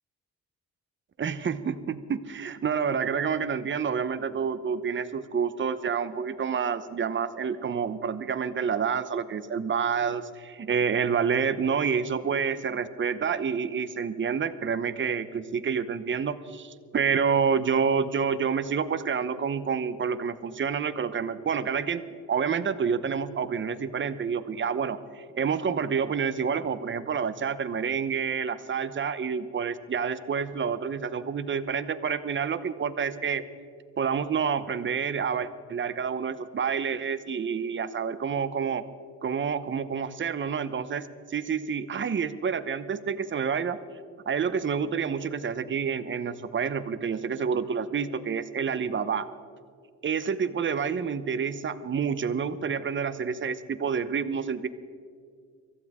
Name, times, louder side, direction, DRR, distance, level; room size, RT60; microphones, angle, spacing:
voice 1, 1.2-22.0 22.3-33.4 34.0-38.8 39.2-43.8 44.3-49.3 50.0-54.7, right 6 dB, 40° right, 12 dB, 1.0 m, -28 dB
24.0 x 15.0 x 3.7 m, 2.1 s
cardioid pair, 90°, 30 cm